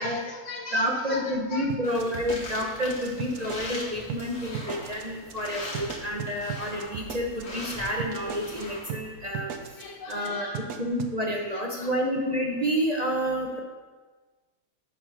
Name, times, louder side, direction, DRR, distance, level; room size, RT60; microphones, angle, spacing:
voice 1, 0.0-1.7 2.0-2.1 5.6-5.8 9.7-10.7 11.5-11.9, left 3 dB, 60° left, 4 dB, 0.9 m, -39 dB
voice 2, 0.7-9.5 10.1-10.5 10.8-13.6, equal, 30° right, -1 dB, 0.8 m, -29 dB
sound 1, 1.7-3.8 4.1-4.2 4.5-5.0 5.3-5.5 5.7-8.6 8.9-9.0 9.3-9.8 10.1-10.3 10.5-11.1, right 9 dB, 80° right, 1.2 m, -36 dB
sound 2, 1.8-8.8, left 1 dB, 85° left, 2.6 m, -41 dB
7.6 x 6.0 x 5.7 m, 1.3 s
omnidirectional pair, 1.6 m